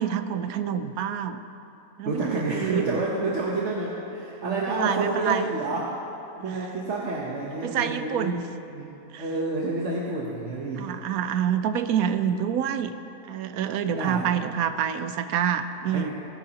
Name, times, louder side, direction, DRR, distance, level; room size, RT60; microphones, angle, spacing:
voice 1, 0.0-1.4 2.0-3.0 4.4-5.6 6.4-6.7 7.6-8.4 9.1-9.3 10.8-12.9 13.2-16.1, right 8 dB, 75° right, 10 dB, 1.0 m, -27 dB
voice 2, 2.0-5.9 6.4-8.4 8.7-8.9 9.2-10.9 13.9-14.3 15.9-16.1, right 2 dB, 55° right, -4 dB, 1.3 m, -29 dB
18.5 x 10.5 x 2.9 m, 2.9 s
omnidirectional pair, 1.6 m